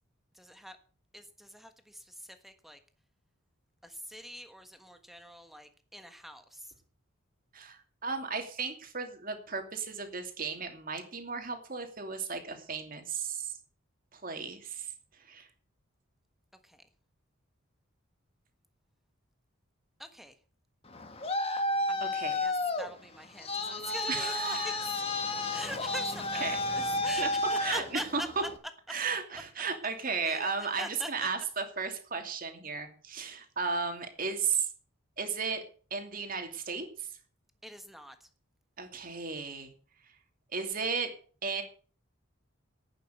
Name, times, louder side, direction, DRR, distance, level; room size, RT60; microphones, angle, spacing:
voice 1, 0.3-0.8 1.1-2.8 3.8-6.7 16.6-16.8 20.0-20.3 21.9-25.0 25.5-28.3 30.2-30.5 30.8-31.3 37.6-38.3, equal, ahead, 8 dB, 1.3 m, -44 dB
voice 2, 7.5-13.6 14.1-14.9 15.2-15.5 22.1-22.5 24.1-24.9 26.4-26.6 27.2-27.3 27.6-28.2 28.9-34.7 35.2-35.6 35.9-37.1 38.8-39.7 40.5-41.1 41.4-41.6, right 5 dB, 40° right, 5 dB, 2.7 m, -34 dB
Traffic noise roadway noise, 20.9-28.6, left 2 dB, 25° left, 1.6 m, -32 dB
11.5 x 9.1 x 8.0 m, 0.42 s
head